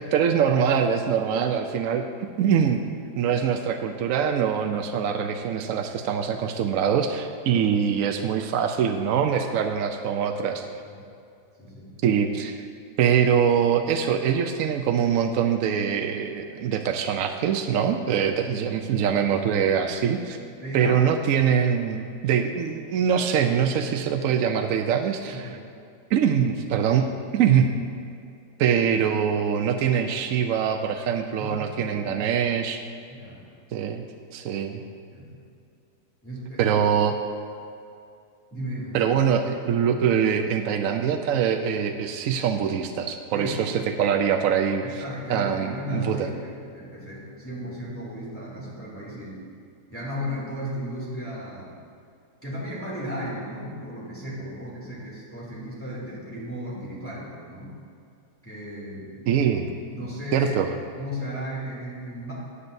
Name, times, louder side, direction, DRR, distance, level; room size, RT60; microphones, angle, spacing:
voice 1, 0.0-2.1 2.4-2.8 3.2-10.6 12.0-12.6 13.0-20.4 20.7-25.5 26.1-27.7 28.6-32.8 33.7-34.0 34.3-34.8 36.6-37.1 38.9-45.0 45.3-46.3 59.3-59.7 60.3-60.7, right 7 dB, 65° right, 5 dB, 0.9 m, -23 dB
voice 2, 11.6-11.9 20.6-21.3 25.3-25.7 31.4-32.3 33.1-33.5 35.1-35.4 36.2-36.7 38.5-39.0 43.3-43.6 44.6-49.4 49.9-51.8 52.4-57.7 58.4-59.4 59.9-60.6 61.0-62.3, equal, 10° left, -7 dB, 2.8 m, -35 dB
16.5 x 9.7 x 2.7 m, 2.5 s
omnidirectional pair, 1.7 m